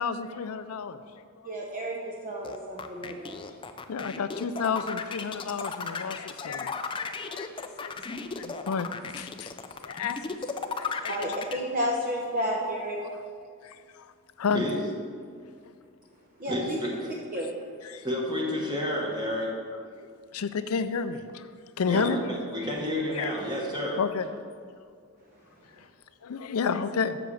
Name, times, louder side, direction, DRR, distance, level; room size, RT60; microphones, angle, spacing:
voice 1, 0.0-2.0 3.9-9.5 9.8-10.5 10.8-11.7 13.1-13.2 13.6-14.1 14.4-14.6 17.8-18.1 20.0-21.5 21.8-22.2 22.6-22.7 23.1-23.3 24.0-24.3 25.8-25.9 26.2-27.2, left 5 dB, 85° left, 11 dB, 0.5 m, -32 dB
voice 2, 1.4-3.4 11.1-13.0 16.4-16.8 17.3-17.5, equal, 40° right, -1 dB, 0.8 m, -31 dB
sound 1, 2.4-11.5, left 5 dB, 25° left, 0.4 m, -35 dB
voice 3, 16.5-17.1 18.0-19.5 21.9-24.0, left 1 dB, 20° right, -3 dB, 1.5 m, -30 dB
7.0 x 6.8 x 6.3 m, 2.2 s
head